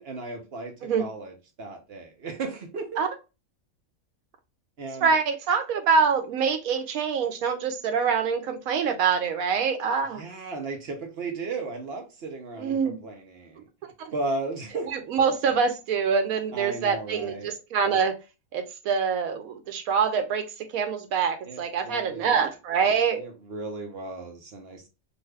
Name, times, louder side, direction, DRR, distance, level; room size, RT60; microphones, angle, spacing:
voice 1, 0.0-1.3 1.6-2.9 4.8-5.1 10.2-13.6 14.1-14.9 16.5-17.5 21.5-22.4 23.2-24.9, right 3 dB, 55° right, 0.9 m, -35 dB
voice 2, 5.0-10.2 12.6-13.0 13.8-14.1 14.8-18.2 18.5-23.2, right 6 dB, 85° right, 1.1 m, -25 dB
2.6 x 2.5 x 3.1 m
omnidirectional pair, 1.4 m